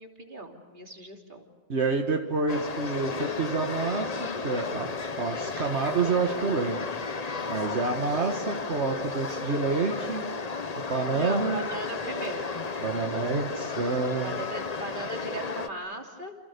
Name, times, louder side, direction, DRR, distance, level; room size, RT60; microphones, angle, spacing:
voice 1, 0.0-1.4 11.1-12.6 14.2-16.4, right 1 dB, 50° right, 2 dB, 3.3 m, -38 dB
voice 2, 1.7-6.8 7.5-10.2 10.8-11.6 12.8-14.4, right 4 dB, 80° right, 3 dB, 1.9 m, -28 dB
sound 1, 2.5-15.7, left 4 dB, 40° left, 1.1 m, -33 dB
29.0 x 28.5 x 6.8 m, 1.3 s
omnidirectional pair, 1.1 m